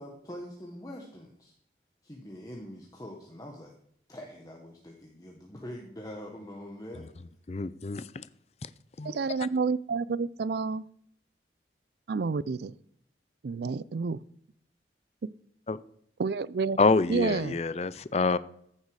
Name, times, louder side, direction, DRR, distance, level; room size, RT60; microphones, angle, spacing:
voice 1, 0.0-1.5 2.0-3.7 4.1-7.1, equal, 20° left, 0 dB, 1.2 m, -44 dB
voice 2, 7.5-8.2 9.0-9.1 15.7-15.8 16.8-18.4, left 3 dB, 35° left, 16 dB, 0.4 m, -26 dB
voice 3, 9.0-10.8 12.1-12.7 13.4-14.2 15.2-15.3 16.2-16.8 17.1-17.6, right 4 dB, 70° right, 19 dB, 0.4 m, -29 dB
14.5 x 6.6 x 4.8 m, 0.69 s
head